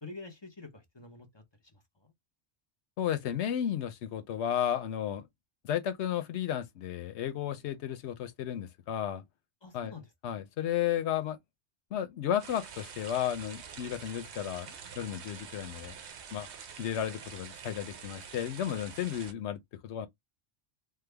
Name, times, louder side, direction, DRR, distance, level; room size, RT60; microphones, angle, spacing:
voice 1, 0.0-1.4 1.7-2.1 9.6-10.4, left 3 dB, 30° left, 0.7 m, -48 dB
voice 2, 3.0-5.3 5.6-9.2 9.7-9.9 10.2-11.4 11.9-15.9 16.3-16.5 16.8-20.1, left 10 dB, 85° left, 0.9 m, -33 dB
sound 1, 12.4-19.3, right 7 dB, 80° right, 0.9 m, -47 dB
3.3 x 2.0 x 3.3 m
omnidirectional pair, 1.1 m